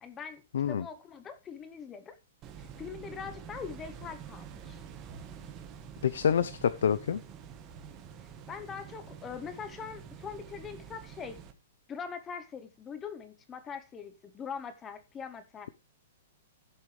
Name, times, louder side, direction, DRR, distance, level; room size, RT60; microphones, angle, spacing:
voice 1, 0.0-2.2 2.6-4.8 8.5-11.4 11.9-15.7, left 6 dB, 15° left, 0.9 m, -42 dB
voice 2, 0.5-0.8 6.0-7.2, left 8 dB, 80° left, 0.7 m, -27 dB
sound 1, 2.4-11.5, right 7 dB, 20° right, 1.2 m, -47 dB
16.5 x 7.3 x 3.2 m
hypercardioid pair, 175°, 0 cm